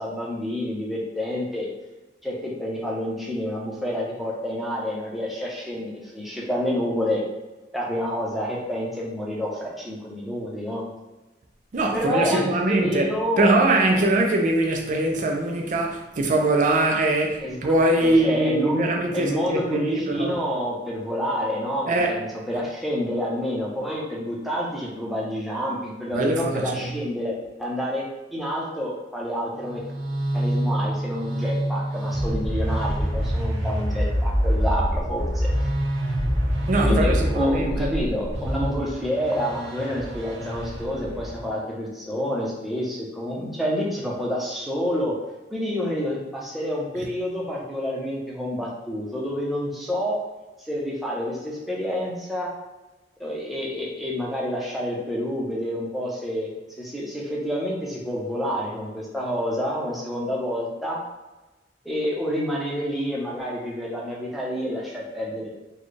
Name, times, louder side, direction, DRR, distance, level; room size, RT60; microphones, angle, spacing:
voice 1, 0.0-1.7 2.2-7.2 7.7-10.8 11.9-13.5 17.4-17.7 18.0-18.8 19.1-28.0 28.3-29.8 30.3-35.5 36.8-45.1 45.5-50.2 50.6-52.5 53.2-56.5 56.8-61.0 61.8-65.5, equal, ahead, 0.7 m, -28 dB
voice 2, 11.7-13.1 13.4-20.4 21.9-22.2 26.1-26.7 36.7-37.9, right 2 dB, 45° right, 0.4 m, -22 dB
sound 1, 29.6-41.4, equal, 80° right, 0.8 m, -26 dB
4.0 x 2.3 x 3.2 m
head